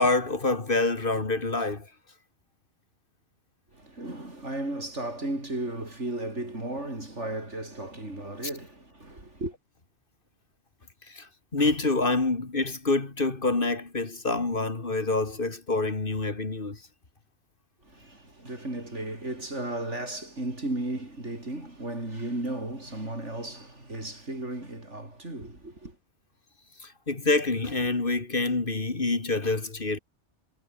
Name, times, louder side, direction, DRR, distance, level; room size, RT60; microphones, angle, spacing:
voice 1, 0.0-1.9 11.1-16.8 26.8-30.0, left 3 dB, 50° left, 2.5 m, -27 dB
voice 2, 3.7-9.5 17.8-26.0, right 1 dB, 80° right, 7.0 m, -35 dB
omnidirectional pair, 1.2 m